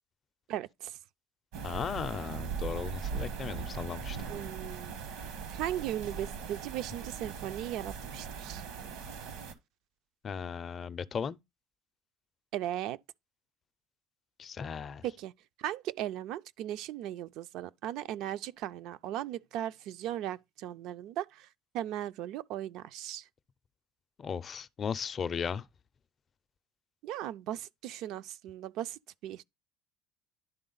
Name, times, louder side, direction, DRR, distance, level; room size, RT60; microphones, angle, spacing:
voice 1, 0.5-1.0 4.3-5.0 5.5-8.6 12.5-13.0 15.0-15.3 15.6-21.5 21.7-23.2 27.0-29.4, right 12 dB, 70° right, 0.4 m, -37 dB
sound 1, 1.5-9.5, right 5 dB, 85° right, 1.2 m, -39 dB
voice 2, 1.6-4.2 10.2-11.4 14.4-15.1 24.2-25.7, left 6 dB, 35° left, 0.4 m, -36 dB
11.0 x 3.6 x 3.9 m
cardioid pair, 130°, 0 cm